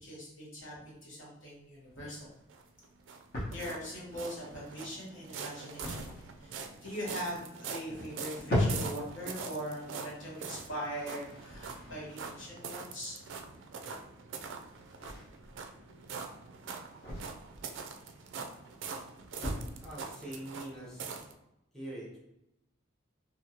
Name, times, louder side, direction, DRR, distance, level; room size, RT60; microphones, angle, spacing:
voice 1, 0.0-2.3 3.5-6.1 6.4-6.6 6.8-13.2, equal, 70° left, -6 dB, 1.3 m, -41 dB
sound 1, 1.5-21.2, left 1 dB, 45° left, 0.9 m, -41 dB
sound 2, 2.5-21.3, right 5 dB, 65° right, 0.3 m, -44 dB
voice 2, 19.8-21.2 21.7-22.2, right 1 dB, ahead, -7 dB, 0.7 m, -43 dB
2.9 x 2.6 x 2.7 m, 0.87 s
head